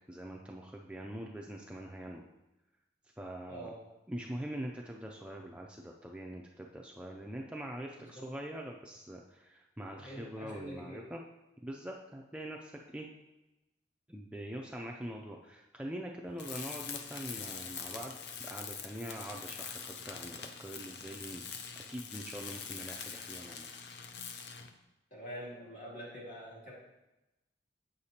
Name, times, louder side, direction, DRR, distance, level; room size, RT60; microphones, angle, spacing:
voice 1, 0.1-2.2 3.2-3.7 4.1-11.2 11.6-13.1 14.1-21.4 21.9-23.8, right 1 dB, 5° right, 0 dB, 0.4 m, -43 dB
voice 2, 3.5-3.8 8.0-8.2 10.0-11.0 25.1-26.7, equal, 45° left, -6 dB, 2.6 m, -45 dB
Tools, 16.4-24.8, left 6 dB, 70° left, 0.5 m, -44 dB
7.9 x 6.6 x 2.8 m, 0.99 s
head